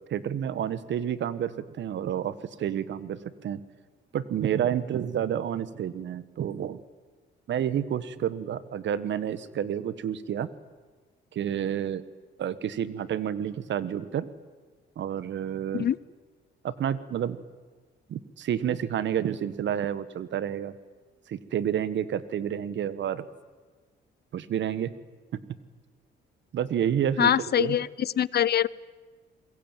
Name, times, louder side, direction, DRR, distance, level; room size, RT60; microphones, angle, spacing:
voice 1, 0.1-3.6 4.1-6.8 7.5-10.5 11.3-12.0 12.4-14.3 15.0-15.9 16.6-17.4 18.1-20.7 21.3-23.3 24.3-24.9 26.5-27.3 27.6-27.8, right 9 dB, 65° right, 15 dB, 1.6 m, -29 dB
voice 2, 27.2-28.7, left 10 dB, 55° left, 21 dB, 0.8 m, -24 dB
28.0 x 22.0 x 9.2 m, 1.4 s
cardioid pair, 90°, 20 cm